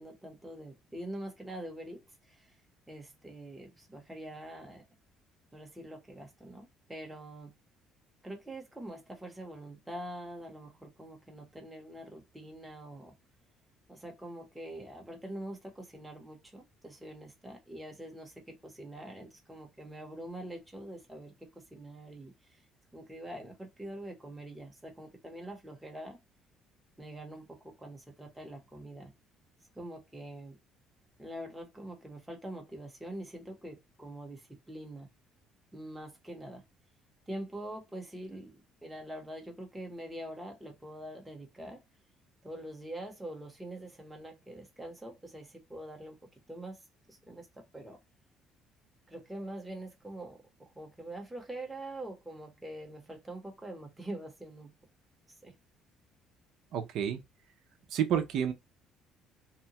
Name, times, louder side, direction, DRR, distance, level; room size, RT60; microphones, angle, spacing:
voice 1, 0.0-2.5 2.9-4.8 5.5-7.6 8.2-13.1 13.9-22.6 22.9-26.2 27.0-29.1 29.7-30.6 31.2-35.1 35.7-36.6 37.3-41.8 42.4-46.2 46.5-46.8 47.1-48.0 49.1-54.8 55.3-55.5, right 1 dB, 5° right, 0.8 m, -44 dB
voice 2, 56.7-57.2 57.9-58.5, right 9 dB, 60° right, 0.5 m, -29 dB
2.8 x 2.2 x 2.8 m
cardioid pair, 160°, 0 cm